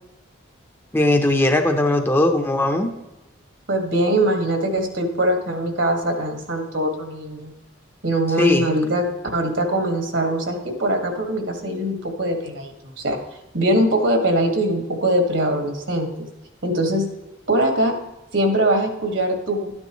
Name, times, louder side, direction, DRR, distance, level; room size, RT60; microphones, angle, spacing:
voice 1, 0.9-2.9 8.4-8.7, left 1 dB, 10° left, 5 dB, 0.7 m, -19 dB
voice 2, 3.7-7.5 8.0-9.0 9.3-13.2 13.5-16.3 16.6-17.0 17.5-18.0 18.3-19.7, right 1 dB, 70° right, 4 dB, 1.9 m, -22 dB
12.5 x 9.7 x 3.1 m, 1.0 s
head